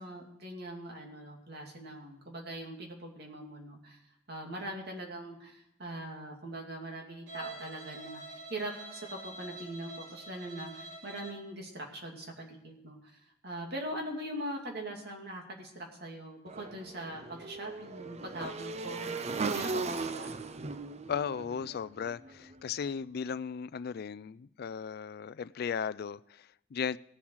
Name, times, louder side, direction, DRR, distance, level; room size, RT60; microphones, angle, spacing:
voice 1, 0.0-4.0 4.3-20.3, right 1 dB, 60° right, 1 dB, 2.6 m, -42 dB
Bowed string instrument, 7.3-11.5, right 2 dB, 85° right, 4.6 m, -46 dB
Motorcycle / Engine, 16.5-22.6, right 4 dB, 35° right, 0.6 m, -38 dB
voice 2, 21.1-27.0, left 7 dB, 55° left, 18 dB, 0.3 m, -36 dB
18.0 x 7.2 x 4.6 m, 0.81 s
head